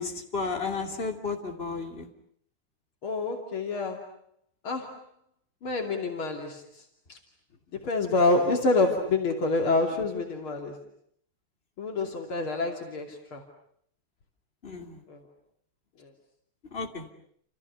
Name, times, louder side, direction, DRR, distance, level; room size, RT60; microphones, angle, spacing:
voice 1, 0.0-2.1 14.6-15.0 16.7-17.1, left 4 dB, 30° left, 3 dB, 3.0 m, -33 dB
voice 2, 3.0-4.0 4.6-4.9 5.6-6.6 7.1-7.2 7.7-10.8 11.8-13.4 15.1-15.2 16.0-16.1, left 3 dB, 75° left, 3 dB, 3.6 m, -27 dB
30.0 x 28.0 x 6.9 m, 0.65 s
omnidirectional pair, 2.3 m